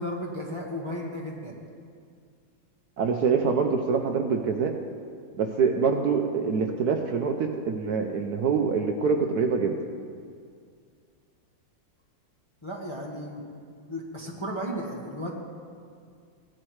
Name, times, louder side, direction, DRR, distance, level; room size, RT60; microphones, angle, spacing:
voice 1, 0.0-1.6 12.6-13.6 13.9-15.3, equal, 15° left, -4 dB, 1.2 m, -34 dB
voice 2, 3.0-4.8 5.4-9.8, right 5 dB, 65° right, 4 dB, 1.1 m, -25 dB
17.0 x 12.0 x 3.2 m, 2.2 s
omnidirectional pair, 2.0 m